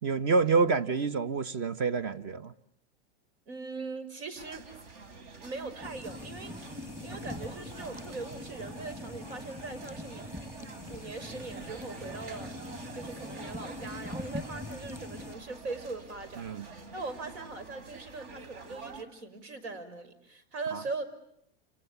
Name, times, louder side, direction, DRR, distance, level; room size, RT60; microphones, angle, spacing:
voice 1, 0.0-2.5 16.4-16.7 20.7-20.8, right 4 dB, 35° right, 1.2 m, -27 dB
voice 2, 3.5-4.7 5.4-10.3 10.9-12.5 12.9-21.0, right 3 dB, 75° right, 6.0 m, -40 dB
sound 1, 4.4-19.0, right 4 dB, 60° right, 4.1 m, -47 dB
sound 2, 5.8-15.4, left 2 dB, 10° right, 1.3 m, -43 dB
29.5 x 27.5 x 7.2 m
supercardioid pair, 150°, 33 cm